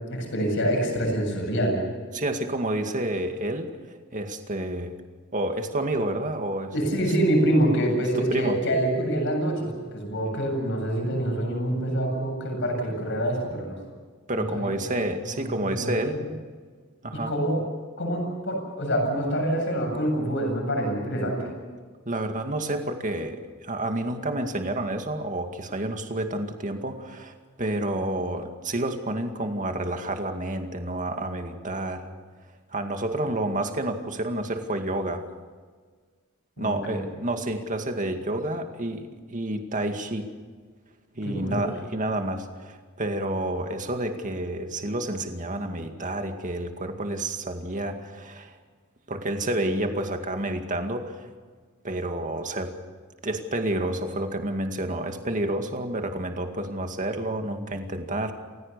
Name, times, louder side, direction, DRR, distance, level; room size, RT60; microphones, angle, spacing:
voice 1, 0.1-1.8 6.7-13.8 14.3-14.9 15.4-16.3 17.1-17.6 18.0-21.5 36.6-37.0 41.2-41.6, right 1 dB, 60° left, 2 dB, 7.8 m, -26 dB
voice 2, 2.1-3.7 4.1-5.0 5.3-6.7 7.0-7.1 8.3-8.6 14.3-16.2 17.0-17.3 22.1-32.1 32.7-35.2 36.6-40.3 41.2-48.6 49.1-51.3 51.8-52.8 53.2-58.3, right 1 dB, 40° right, 5 dB, 2.2 m, -29 dB
28.5 x 16.0 x 6.8 m, 1.5 s
head